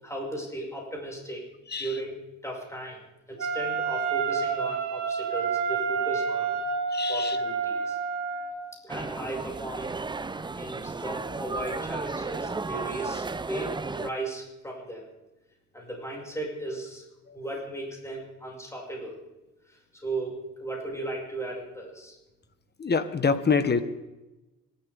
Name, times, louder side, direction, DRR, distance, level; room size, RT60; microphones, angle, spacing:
voice 1, 0.0-1.4 1.8-6.6 7.1-8.0 8.7-10.1 10.5-15.1 15.7-17.0 17.3-19.2 19.7-22.2, right 1 dB, 10° left, -3 dB, 6.2 m, -36 dB
Wind instrument woodwind instrument, 3.4-8.6, right 5 dB, 75° right, 2.8 m, -29 dB
voice 2, 6.9-7.4 17.3-17.4 22.8-23.8, left 5 dB, 35° left, 11 dB, 1.4 m, -26 dB
sound 1, 8.9-14.1, right 3 dB, 15° right, 0.6 m, -34 dB
26.0 x 13.0 x 3.7 m, 1.0 s
cardioid pair, 90°, 30 cm